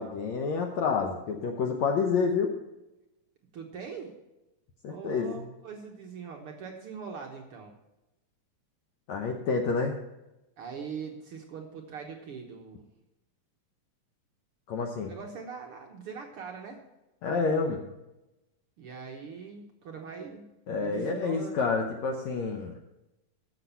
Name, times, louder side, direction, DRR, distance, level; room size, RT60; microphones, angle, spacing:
voice 1, 0.0-2.6 4.8-5.4 9.1-9.9 14.7-15.1 17.2-17.8 20.7-22.8, left 4 dB, 70° left, 2 dB, 1.8 m, -28 dB
voice 2, 3.5-4.1 4.9-7.7 10.6-12.9 15.0-16.8 18.8-20.5 20.8-21.6, right 6 dB, 70° right, 1 dB, 1.3 m, -42 dB
14.0 x 7.0 x 5.6 m, 0.97 s
omnidirectional pair, 4.1 m